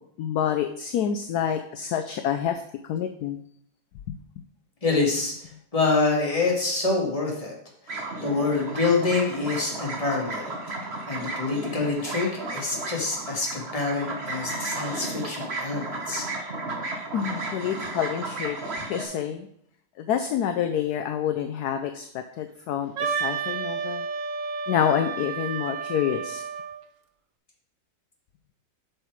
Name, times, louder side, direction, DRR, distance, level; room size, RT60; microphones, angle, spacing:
voice 1, 0.2-3.4 4.1-4.2 17.1-18.6 18.9-19.5 20.0-24.1 24.7-26.4, left 9 dB, 70° left, 8 dB, 1.0 m, -27 dB
voice 2, 4.8-5.3 5.7-7.5 8.2-10.5 11.1-16.3, left 3 dB, 20° left, -2 dB, 1.9 m, -26 dB
sound 1, 7.9-19.0, right 2 dB, 35° right, 1.5 m, -34 dB
Wind instrument woodwind instrument, 23.0-26.8, right 6 dB, 55° right, 1.0 m, -31 dB
8.1 x 5.9 x 4.7 m, 0.68 s
omnidirectional pair, 2.0 m